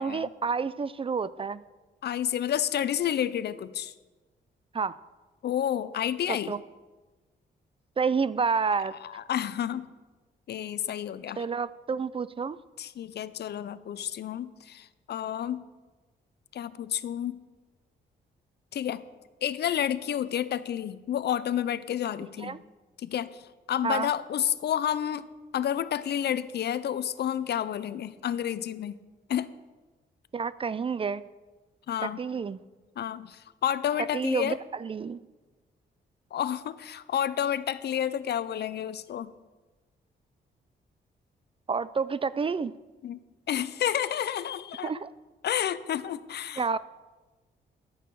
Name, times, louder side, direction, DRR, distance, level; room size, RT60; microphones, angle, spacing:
voice 1, 0.0-1.6 4.7-5.0 6.3-6.6 8.0-9.0 11.4-12.6 22.4-22.6 23.8-24.1 30.3-31.2 32.0-32.6 34.1-35.2 41.7-42.7 44.8-45.1 46.6-46.8, right 5 dB, 30° right, 18 dB, 0.4 m, -29 dB
voice 2, 2.0-3.9 5.4-6.5 9.0-9.9 10.5-11.5 12.8-15.6 16.5-17.4 18.7-19.0 19.4-22.6 23.0-23.4 23.7-25.2 25.5-29.0 29.3-29.5 31.9-32.2 33.0-34.6 36.3-39.3 43.0-43.2 43.5-44.9 45.4-46.6, left 10 dB, 65° left, 15 dB, 0.5 m, -30 dB
11.5 x 8.9 x 4.7 m, 1.2 s
cardioid pair, 75°, 19 cm